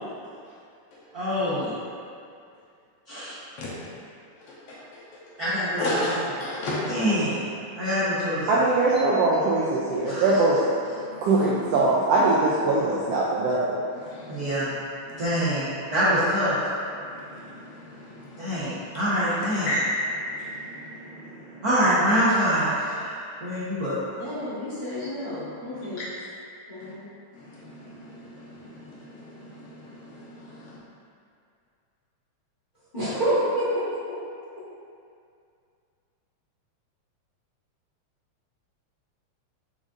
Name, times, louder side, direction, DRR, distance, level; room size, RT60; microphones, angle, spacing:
voice 1, 1.1-1.7 3.1-3.4 5.4-6.1 6.9-7.4 7.7-8.5 10.0-10.4 10.9-11.0 14.3-14.7 15.2-16.6 18.4-19.7 21.6-24.0 25.0-25.1, equal, 60° right, -12 dB, 1.0 m, -25 dB
voice 2, 4.4-5.0 5.8-6.8 8.9-9.0 10.0-10.4 10.9-11.8 13.9-14.6 15.1-15.4 16.9-18.6 19.7-19.8 20.1-21.6 25.7-26.1 26.8-26.9 27.3-30.8, left 1 dB, 65° left, -7 dB, 1.9 m, -35 dB
voice 3, 8.5-10.6 11.2-13.6, right 2 dB, 80° right, -5 dB, 1.4 m, -21 dB
voice 4, 24.2-26.0 26.7-27.0 32.9-34.2, equal, 30° left, -11 dB, 0.9 m, -28 dB
7.3 x 5.1 x 2.6 m, 2.4 s
omnidirectional pair, 3.3 m